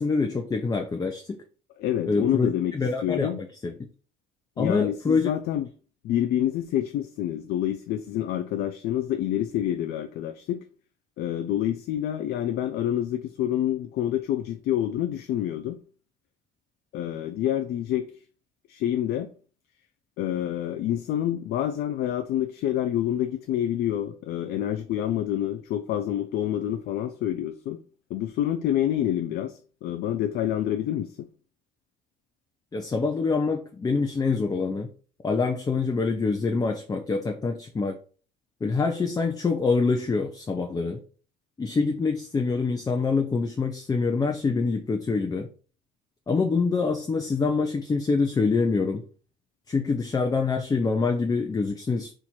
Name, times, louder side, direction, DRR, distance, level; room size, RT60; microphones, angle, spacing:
voice 1, 0.0-1.4 2.1-3.3 3.6-3.7 4.6-5.3 32.7-34.9 35.2-38.0 38.6-41.0 41.6-45.5 46.3-49.0 49.7-52.1, left 4 dB, 20° left, 0.5 m, -25 dB
voice 2, 1.8-2.7 3.0-3.4 4.6-5.7 6.0-10.6 11.2-15.8 16.9-18.1 18.7-19.3 20.2-27.8 28.1-31.3, left 11 dB, 70° left, 0.4 m, -27 dB
4.4 x 2.5 x 4.2 m
cardioid pair, 110°, 17 cm